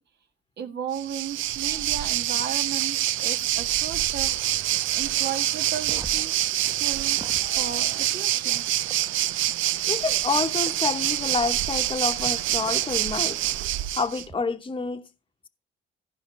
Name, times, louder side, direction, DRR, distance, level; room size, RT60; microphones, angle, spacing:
voice 1, 0.6-4.3 4.6-6.3 6.6-7.2 7.6-8.7, right 8 dB, 60° right, 1.5 m, -35 dB
Waves surf, 0.9-14.2, right 14 dB, 80° right, 0.5 m, -26 dB
sound 1, 5.8-7.5 8.9-9.0 10.7-10.8 12.7-12.8 14.2-14.3, right 2 dB, 20° right, 1.1 m, -41 dB
voice 2, 7.4-8.0 9.8-13.4 13.9-15.1, left 4 dB, 25° left, 1.0 m, -29 dB
14.5 x 5.1 x 5.3 m
cardioid pair, 90°, 20 cm